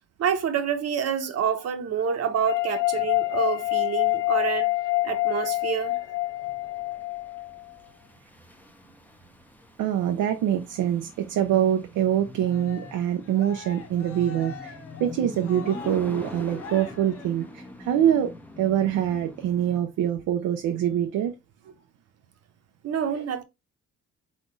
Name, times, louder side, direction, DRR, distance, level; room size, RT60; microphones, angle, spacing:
voice 1, 0.2-4.7 5.0-6.0 22.8-23.4, right 8 dB, 55° right, 1.0 m, -27 dB
sound 1, 2.5-7.7, left 19 dB, 85° left, 0.6 m, -26 dB
sound 2, 4.0-19.8, left 2 dB, 5° left, 0.7 m, -44 dB
voice 2, 9.8-18.3 18.6-21.3, right 10 dB, 85° right, 0.7 m, -25 dB
Cheering, 12.4-17.9, left 6 dB, 50° left, 0.9 m, -44 dB
4.2 x 3.8 x 3.1 m
cardioid pair, 90°, 30 cm